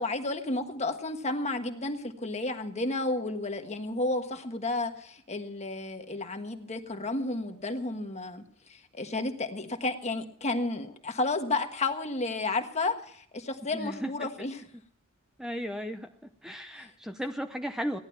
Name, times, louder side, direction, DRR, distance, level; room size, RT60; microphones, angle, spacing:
voice 1, 0.0-8.4 8.7-14.6 16.8-16.9, left 2 dB, 30° left, 6 dB, 1.4 m, -32 dB
voice 2, 13.7-14.5 15.4-16.1 16.4-18.0, equal, 5° right, 6 dB, 0.7 m, -35 dB
17.0 x 11.0 x 5.8 m, 0.64 s
head